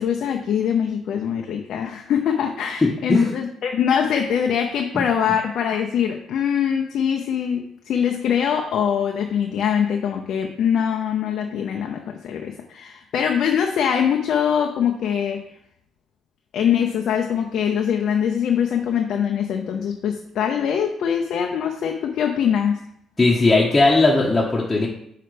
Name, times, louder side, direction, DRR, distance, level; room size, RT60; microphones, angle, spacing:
voice 1, 0.0-15.4 16.5-22.8, left 8 dB, 65° left, 3 dB, 0.6 m, -23 dB
voice 2, 2.8-3.4 23.2-24.9, left 3 dB, 20° left, -4 dB, 1.1 m, -17 dB
5.8 x 5.6 x 3.3 m, 0.73 s
supercardioid pair, 55°, 0 cm